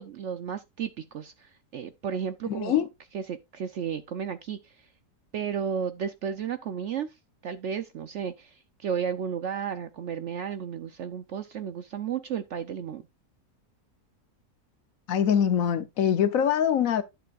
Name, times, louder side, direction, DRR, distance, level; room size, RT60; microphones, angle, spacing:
voice 1, 0.0-2.9 3.1-4.9 5.3-7.2 7.4-13.0, right 7 dB, 65° right, 0.7 m, -33 dB
voice 2, 2.5-2.9 15.1-17.0, left 8 dB, 65° left, 1.1 m, -23 dB
11.0 x 7.6 x 2.4 m
omnidirectional pair, 1.7 m